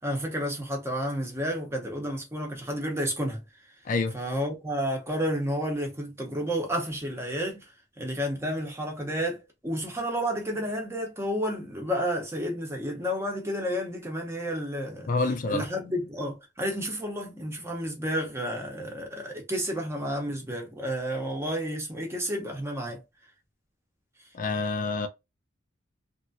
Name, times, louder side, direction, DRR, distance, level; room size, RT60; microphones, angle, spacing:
voice 1, 0.0-3.4 4.1-7.6 8.0-15.1 15.5-23.0, equal, 15° right, 0.8 m, -31 dB
voice 2, 15.1-15.7 24.3-25.1, left 3 dB, 45° left, 0.4 m, -27 dB
2.9 x 2.5 x 2.6 m
head